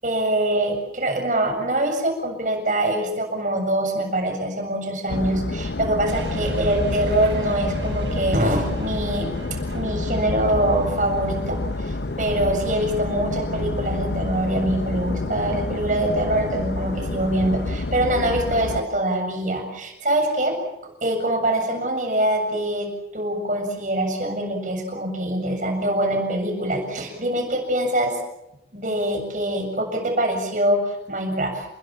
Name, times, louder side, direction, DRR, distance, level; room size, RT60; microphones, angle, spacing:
voice 1, 0.0-9.3 9.7-20.6 21.0-22.9 23.1-28.2 28.7-31.7, right 1 dB, 45° right, 3 dB, 7.3 m, -24 dB
sound 1, 5.1-18.8, left 2 dB, 65° left, 0.9 m, -28 dB
sound 2, 6.1-17.5, right 1 dB, 80° right, 6.9 m, -39 dB
29.0 x 22.0 x 7.5 m, 0.85 s
head